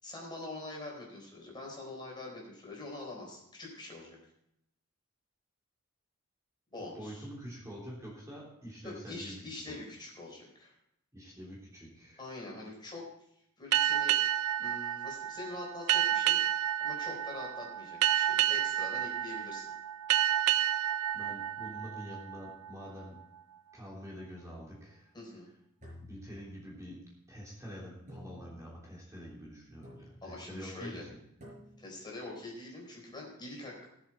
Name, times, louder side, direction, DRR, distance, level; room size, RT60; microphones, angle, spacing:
voice 1, 0.0-4.2 6.7-7.2 8.8-10.7 12.2-13.1 13.6-14.2 14.6-16.4 16.8-19.7 25.1-25.5 30.2-31.0 31.8-33.9, left 2 dB, 20° left, -2 dB, 4.2 m, -44 dB
voice 2, 6.9-9.8 11.1-12.2 12.6-12.7 21.1-23.2 23.7-25.1 26.0-27.0 27.3-31.2, equal, 15° right, -5 dB, 3.4 m, -46 dB
sound 1, 13.7-22.9, right 12 dB, 85° right, 0.4 m, -30 dB
sound 2, 25.8-27.0 28.1-28.9 29.8-30.4 31.4-32.1, equal, 35° right, 6.1 m, -52 dB
18.5 x 7.7 x 4.4 m, 0.77 s
head